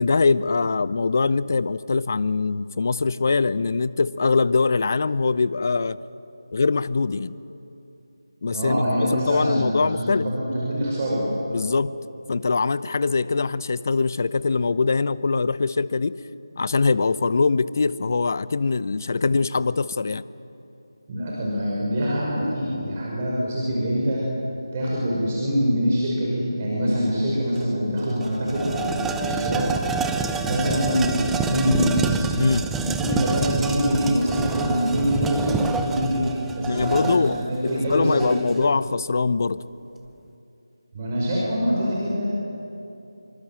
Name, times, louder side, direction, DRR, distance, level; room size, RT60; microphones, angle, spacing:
voice 1, 0.0-6.0 6.5-7.3 8.4-10.3 11.5-11.9 12.3-16.1 16.6-20.2 32.4-32.7 36.6-39.6, left 4 dB, 40° left, 17 dB, 0.7 m, -22 dB
voice 2, 8.5-11.3 21.1-24.3 24.7-29.7 30.4-32.2 32.8-38.3 40.9-42.2, equal, 25° right, -5 dB, 5.7 m, -24 dB
sound 1, 27.6-27.7 28.0-38.7, right 4 dB, 5° right, 0.6 m, -28 dB
28.0 x 24.5 x 7.7 m, 2.8 s
figure-of-eight pair, 160°, 2 cm